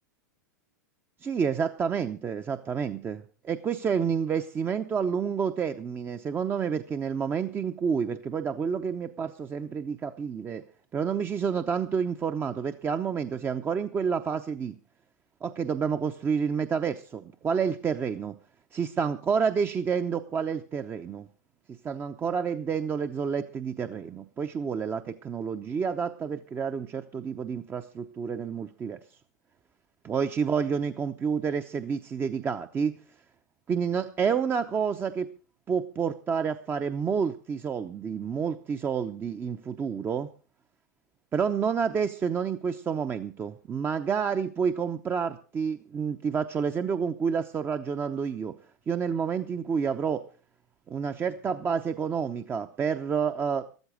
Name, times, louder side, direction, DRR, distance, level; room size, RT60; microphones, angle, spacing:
voice 1, 1.2-10.6 10.9-14.7 15.4-18.3 18.7-21.3 21.7-29.0 30.0-32.9 33.7-35.3 35.7-40.3 41.3-48.5 48.9-50.2 50.9-53.6, right 6 dB, 20° right, 9 dB, 0.8 m, -29 dB
13.5 x 13.5 x 5.0 m, 0.37 s
hypercardioid pair, 100°, 10 cm